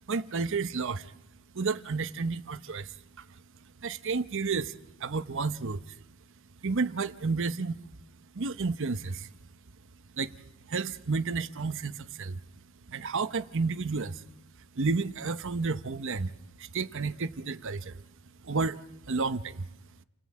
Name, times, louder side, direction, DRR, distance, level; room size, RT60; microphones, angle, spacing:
voice 1, 0.1-1.1 1.5-3.4 3.8-6.0 6.6-7.8 8.3-9.3 10.1-12.4 12.9-14.2 14.7-16.3 16.6-18.0 18.4-19.7, right 4 dB, 60° right, 0.8 m, -31 dB
29.5 x 19.0 x 8.5 m
head